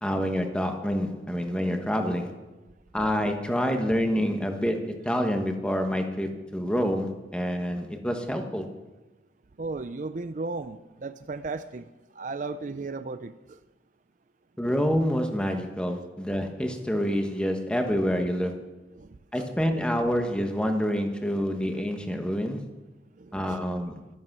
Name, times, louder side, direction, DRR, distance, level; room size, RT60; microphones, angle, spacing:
voice 1, 0.0-2.3 2.9-8.6 14.6-18.7 19.3-22.6 23.3-23.9, equal, 5° left, 5 dB, 1.3 m, -27 dB
voice 2, 9.6-13.6 18.9-19.5 23.2-23.6, right 3 dB, 45° right, 11 dB, 0.5 m, -36 dB
13.0 x 13.0 x 6.1 m, 1.1 s
head